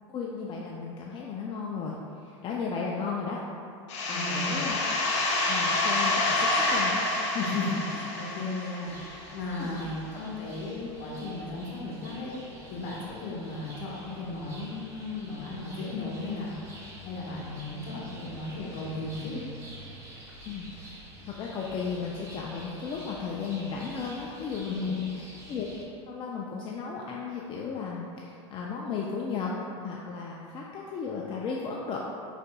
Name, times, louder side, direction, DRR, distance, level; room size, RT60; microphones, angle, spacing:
voice 1, 0.1-3.4 4.1-4.8 5.5-7.5 9.6-9.9 10.1-10.2 20.5-20.9 21.3-25.7 26.1-32.0, left 5 dB, 35° left, -3 dB, 0.4 m, -35 dB
sound 1, 3.9-9.4, left 2 dB, 75° left, 0.8 m, -28 dB
voice 2, 4.1-4.6 7.4-12.3 12.7-16.8 17.0-19.4 24.7-25.1, left 3 dB, 55° left, -5 dB, 1.3 m, -35 dB
sound 2, 8.8-25.8, equal, 20° right, 1.0 m, -47 dB
4.9 x 4.1 x 2.3 m, 2.5 s
hypercardioid pair, 105°, 15 cm